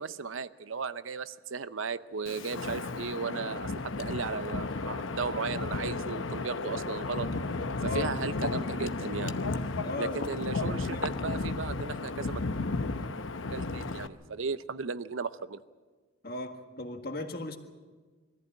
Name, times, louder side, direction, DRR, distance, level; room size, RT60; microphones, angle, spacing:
voice 1, 0.0-7.3 7.8-9.4 10.0-12.4 13.5-15.6, right 5 dB, 85° right, 14 dB, 0.7 m, -36 dB
Wind, 2.3-14.1, left 3 dB, 80° left, 0.9 m, -33 dB
voice 2, 7.8-8.1 9.8-10.4 10.9-11.5 16.2-17.6, left 2 dB, 50° left, 5 dB, 1.8 m, -37 dB
23.0 x 14.5 x 8.8 m, 1.4 s
head